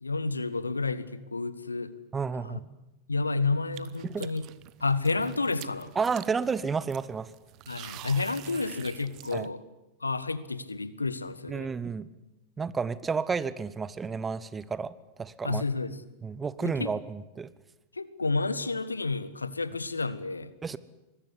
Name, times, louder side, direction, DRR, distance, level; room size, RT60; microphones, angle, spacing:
voice 1, 0.0-1.9 2.4-2.6 3.1-4.5 4.8-5.9 7.7-9.6 10.0-11.7 15.4-16.0 16.6-16.9 17.9-20.5, left 3 dB, 80° left, 16 dB, 1.4 m, -30 dB
voice 2, 2.1-2.6 4.0-4.3 5.9-7.3 9.3-9.5 11.5-12.1 12.6-15.6 16.2-17.5 20.6-20.8, right 5 dB, 15° right, 17 dB, 1.1 m, -31 dB
sound 1, 3.7-9.5, right 17 dB, 40° right, 1.1 m, -47 dB
24.5 x 21.0 x 9.9 m, 1.0 s
figure-of-eight pair, 90°, 0 cm